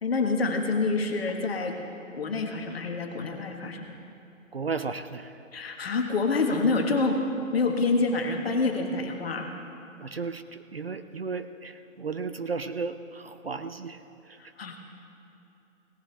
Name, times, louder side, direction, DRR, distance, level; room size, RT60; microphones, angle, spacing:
voice 1, 0.0-1.7 2.1-4.0 5.5-7.2 7.5-9.5 14.6-14.8, left 3 dB, 45° left, 3 dB, 1.5 m, -27 dB
voice 2, 4.5-5.4 10.0-14.0 14.3-14.4, right 4 dB, 50° right, 10 dB, 0.5 m, -34 dB
18.0 x 12.5 x 3.3 m, 2.9 s
figure-of-eight pair, 155°, 41 cm